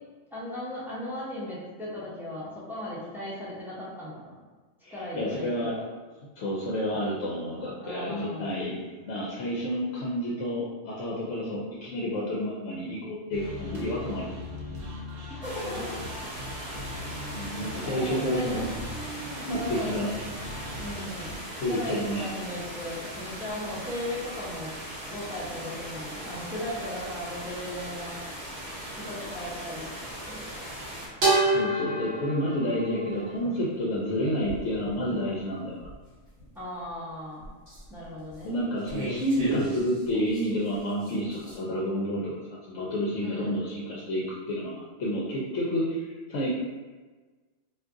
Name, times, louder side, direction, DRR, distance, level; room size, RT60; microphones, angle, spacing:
voice 1, 0.3-4.4 4.9-5.8 7.8-8.6 15.3-16.0 16.4-16.6 17.8-18.6 19.5-20.0 20.8-21.3 21.7-24.7 25.1-28.1 28.9-29.9 30.3-30.4 36.5-37.5 37.9-38.5 43.2-43.6, left 1 dB, ahead, -9 dB, 0.5 m, -37 dB
voice 2, 4.8-5.7 6.4-14.3 17.3-18.7 19.2-20.1 21.6-22.3 31.4-35.9 38.4-46.5, equal, 65° left, -5 dB, 0.8 m, -30 dB
sound 1, 13.3-21.4, left 1 dB, 80° right, 1.0 m, -39 dB
sound 2, 15.4-31.1, equal, 35° right, 0.8 m, -39 dB
sound 3, 25.8-26.9 30.1-30.4 31.2-33.7 34.4-34.9 35.8-36.9 37.4-38.4 38.9-40.5 40.8-41.6, right 2 dB, 60° right, 1.3 m, -30 dB
2.5 x 2.4 x 3.6 m, 1.3 s
omnidirectional pair, 1.4 m